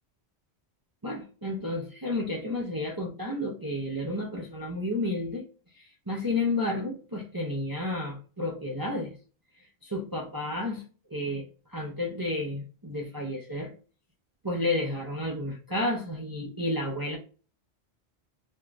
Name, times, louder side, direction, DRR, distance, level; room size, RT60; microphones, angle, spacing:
voice 1, 1.0-5.4 5.8-9.1 9.8-10.8 11.1-11.4 11.7-13.7 14.4-17.2, left 2 dB, 25° right, 0.6 m, -31 dB
2.6 x 2.5 x 3.2 m
omnidirectional pair, 1.1 m